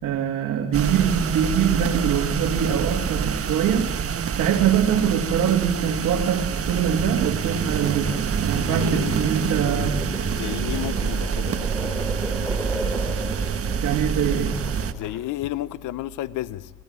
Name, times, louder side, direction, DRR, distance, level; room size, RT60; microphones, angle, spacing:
voice 1, 0.0-3.9 4.3-10.1 13.8-14.6, right 8 dB, 80° right, 2.5 m, -23 dB
sound 1, 0.7-14.9, right 7 dB, 50° right, 1.5 m, -26 dB
sound 2, 6.6-15.3, equal, 5° left, 4.0 m, -37 dB
voice 2, 8.5-9.9 10.2-11.7 14.9-16.7, left 14 dB, 90° left, 0.9 m, -32 dB
25.5 x 18.0 x 9.0 m
cardioid pair, 90°, 30 cm